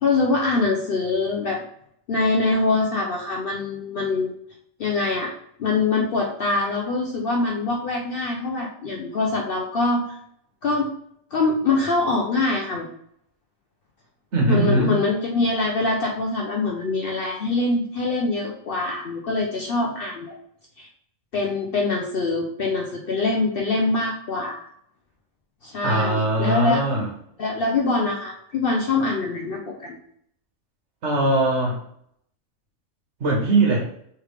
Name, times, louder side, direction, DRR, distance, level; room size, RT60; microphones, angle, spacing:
voice 1, 0.0-1.6 2.1-4.4 4.8-5.3 5.6-10.0 10.6-10.9 11.3-12.9 14.5-20.4 20.8-20.9 21.3-24.6 25.6-26.8 27.4-30.0, left 3 dB, 60° left, 1 dB, 0.6 m, -24 dB
voice 2, 14.3-15.0 25.8-27.1 31.0-31.8 33.2-33.9, right 2 dB, 60° right, -1 dB, 1.3 m, -21 dB
3.4 x 3.3 x 3.2 m, 0.68 s
omnidirectional pair, 1.4 m